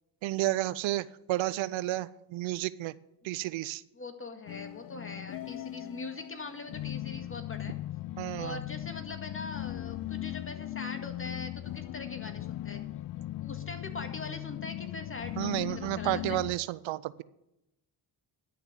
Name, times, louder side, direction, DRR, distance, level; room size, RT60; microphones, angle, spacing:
voice 1, 0.2-2.9 3.2-3.8 8.2-8.6 15.4-17.2, right 16 dB, 75° right, 18 dB, 0.6 m, -31 dB
voice 2, 3.9-7.7 8.4-12.8 13.2-16.4, left 3 dB, 25° left, 6 dB, 2.0 m, -42 dB
sound 1, 4.5-16.6, left 14 dB, 50° left, 0.5 m, -39 dB
11.0 x 6.8 x 7.5 m, 0.86 s
cardioid pair, 75°, 48 cm